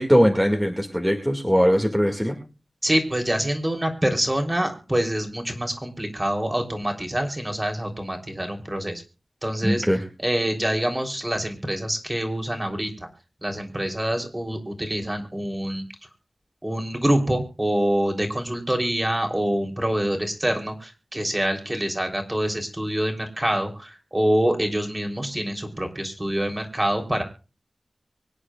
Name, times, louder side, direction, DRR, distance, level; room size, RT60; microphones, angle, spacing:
voice 1, 0.0-2.4 9.6-10.0, equal, ahead, 3 dB, 2.2 m, -20 dB
voice 2, 2.8-9.0 9.4-13.1 13.4-15.9 16.6-27.2, right 1 dB, 20° right, 4 dB, 3.6 m, -26 dB
24.5 x 10.0 x 2.4 m, 0.33 s
wide cardioid pair, 80°, 0 cm